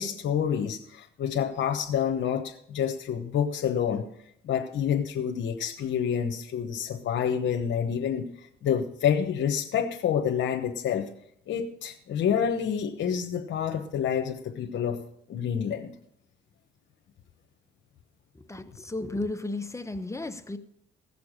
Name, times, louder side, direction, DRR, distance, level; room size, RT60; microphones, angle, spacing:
voice 1, 0.0-4.1 4.4-11.1 11.5-15.0 15.3-15.9, left 8 dB, 70° left, 3 dB, 1.1 m, -28 dB
voice 2, 18.4-20.6, left 2 dB, 15° left, 9 dB, 0.9 m, -34 dB
16.5 x 6.9 x 6.6 m, 0.70 s
cardioid pair, 90°, 20 cm